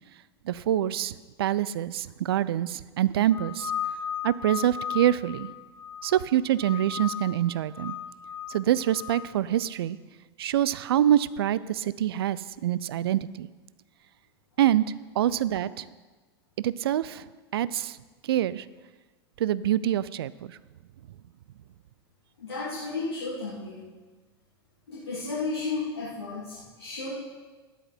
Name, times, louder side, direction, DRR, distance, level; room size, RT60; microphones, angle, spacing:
voice 1, 0.4-3.7 4.2-5.5 6.0-7.9 8.5-10.0 10.4-13.5 14.6-15.9 16.6-17.3 17.5-18.0 18.2-18.7 19.4-20.6, right 11 dB, 65° right, 18 dB, 0.5 m, -25 dB
sound 1, 3.3-6.2 6.6-7.4 7.7-9.3, left 9 dB, 10° left, 1.4 m, -36 dB
voice 2, 22.4-23.9 24.9-27.1, left 3 dB, 75° left, -8 dB, 3.0 m, -33 dB
13.0 x 10.5 x 4.5 m, 1.3 s
figure-of-eight pair, 90°, 13 cm